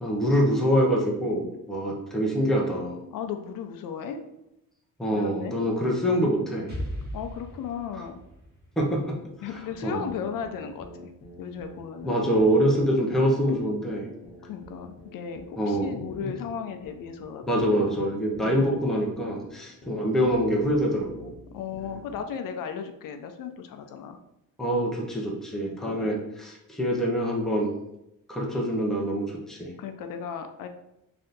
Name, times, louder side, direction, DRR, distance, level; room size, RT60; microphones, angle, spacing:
voice 1, 0.0-3.0 5.0-6.7 8.8-9.2 9.8-10.1 12.0-14.0 15.6-15.9 16.2-16.4 17.4-21.3 24.6-27.7 28.3-29.7, equal, ahead, -2 dB, 0.5 m, -25 dB
voice 2, 3.1-4.2 5.1-5.6 7.1-8.2 9.4-11.1 11.4-12.2 14.4-17.8 18.4-18.7 19.2-19.3 21.5-24.2 25.6-26.1 29.8-30.7, left 7 dB, 75° left, 6 dB, 0.5 m, -36 dB
Explosion, 6.7-10.5, equal, 30° right, 1.0 m, -39 dB
sound 1, 9.5-22.2, left 1 dB, 55° left, 0.9 m, -47 dB
3.3 x 2.7 x 3.8 m, 0.86 s
wide cardioid pair, 180°, 33 cm